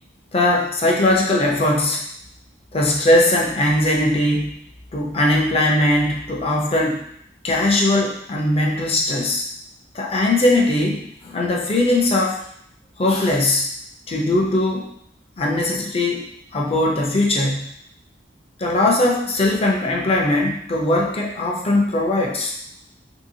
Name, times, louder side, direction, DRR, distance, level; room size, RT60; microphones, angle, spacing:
voice 1, 0.3-2.0 2.7-4.5 4.9-7.0 7.4-9.4 9.9-12.4 13.0-13.7 14.1-14.9 15.4-17.7 18.6-22.5, left 1 dB, 30° left, -1 dB, 0.5 m, -20 dB
3.4 x 2.8 x 2.6 m, 0.71 s
head